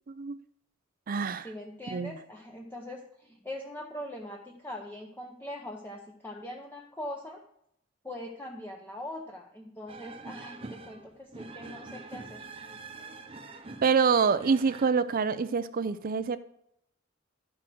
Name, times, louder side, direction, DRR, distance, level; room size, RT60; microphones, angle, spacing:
voice 1, 0.1-0.4 1.1-1.5 1.9-2.2 13.8-16.4, right 5 dB, 45° right, 13 dB, 0.5 m, -26 dB
voice 2, 1.4-7.4 8.0-12.5, left 1 dB, 10° left, 1 dB, 0.8 m, -42 dB
sound 1, 9.9-14.9, right 3 dB, 30° right, 0.9 m, -45 dB
11.0 x 6.0 x 6.2 m, 0.74 s
head